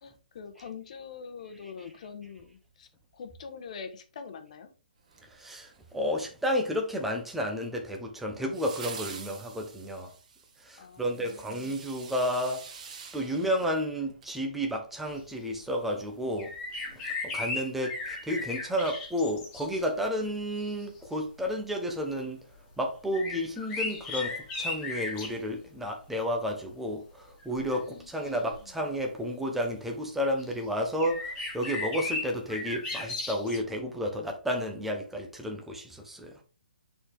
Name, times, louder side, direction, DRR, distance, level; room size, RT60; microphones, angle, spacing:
voice 1, 0.0-2.9 3.1-4.7 10.8-11.6 27.9-28.2, left 6 dB, 50° left, 1.3 m, -44 dB
sound 1, 5.1-6.0 8.5-14.3 14.7-14.8, right 5 dB, 50° right, 2.0 m, -46 dB
voice 2, 5.2-10.1 10.6-12.7 13.1-16.5 16.9-22.4 22.8-36.4, equal, 5° right, 1.1 m, -32 dB
sound 2, 16.4-19.9 20.6-20.7 23.1-25.4 27.4-27.8 28.5-28.6 30.4-30.5 31.0-33.6, left 3 dB, 20° left, 2.0 m, -36 dB
7.7 x 4.3 x 3.6 m
hypercardioid pair, 145°, 5 cm